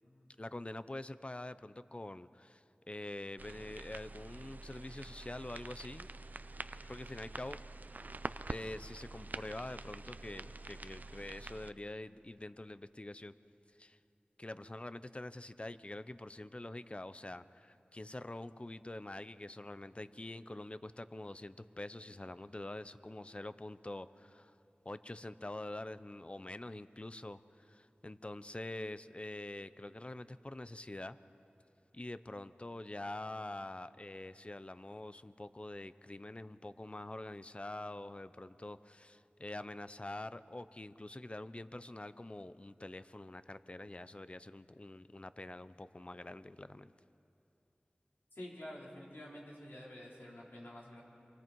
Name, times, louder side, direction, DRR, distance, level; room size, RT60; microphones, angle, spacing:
voice 1, 0.4-6.1 6.9-7.6 8.5-13.3 13.8-14.0 14.4-24.6 24.8-31.2 31.9-46.9, left 2 dB, 35° left, 14 dB, 0.6 m, -45 dB
sound 1, 3.4-11.7, right 2 dB, 55° right, 0.6 m, -46 dB
voice 2, 48.3-51.0, left 1 dB, 90° left, -5 dB, 4.9 m, -49 dB
27.0 x 24.0 x 4.7 m, 2.8 s
wide cardioid pair, 45°, 4 cm